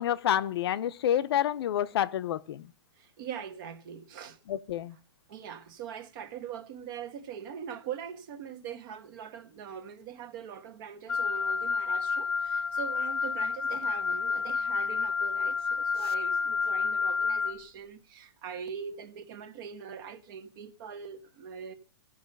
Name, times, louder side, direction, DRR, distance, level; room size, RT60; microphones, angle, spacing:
voice 1, 0.0-2.7 4.5-5.0, left 11 dB, 60° left, 0.7 m, -28 dB
voice 2, 3.0-4.4 5.3-21.7, right 8 dB, 45° right, 1.3 m, -42 dB
Wind instrument woodwind instrument, 11.1-17.5, left 5 dB, 10° left, 0.9 m, -29 dB
16.5 x 5.6 x 5.3 m
hypercardioid pair, 145°, 14 cm